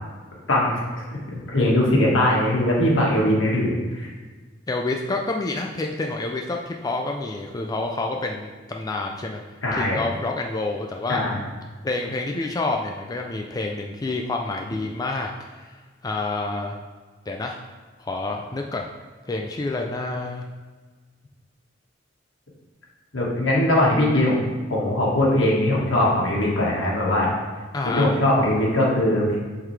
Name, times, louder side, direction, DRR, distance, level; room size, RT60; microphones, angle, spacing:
voice 1, 1.3-4.1 9.6-10.0 11.1-11.4 23.1-27.3 27.8-29.4, left 1 dB, 80° left, -3 dB, 1.6 m, -21 dB
voice 2, 4.7-9.4 9.7-11.2 11.8-15.8 16.0-16.8 17.3-17.6 18.0-18.8 19.3-20.5 27.7-28.1, left 2 dB, 20° left, 2 dB, 0.3 m, -28 dB
7.4 x 3.9 x 3.3 m, 1.4 s
head